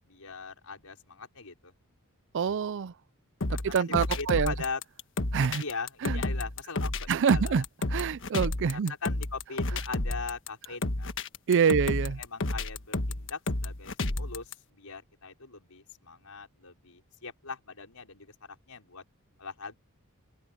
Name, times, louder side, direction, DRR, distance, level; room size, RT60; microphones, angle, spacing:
voice 1, 0.0-1.7 3.5-4.8 5.6-7.6 8.7-11.2 11.6-11.8 12.2-18.3 18.7-19.0 19.4-19.8, left 4 dB, 80° left, 5.4 m, -40 dB
voice 2, 2.3-2.9 3.5-4.5 5.3-5.6 6.0-6.2 7.1-8.9 11.5-12.2, right 6 dB, 55° right, 0.4 m, -26 dB
sound 1, 3.4-14.5, left 2 dB, 60° left, 1.4 m, -31 dB
open air
head